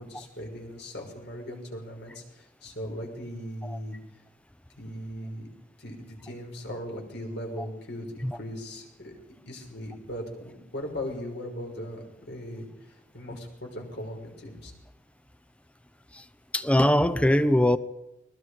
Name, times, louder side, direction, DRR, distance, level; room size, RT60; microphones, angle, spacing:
voice 1, 0.0-4.0 4.8-5.5 5.8-9.2 9.5-14.7, equal, 60° left, 2 dB, 6.1 m, -38 dB
voice 2, 16.5-17.8, left 1 dB, 5° left, 13 dB, 0.8 m, -22 dB
29.0 x 22.0 x 5.1 m, 0.92 s
head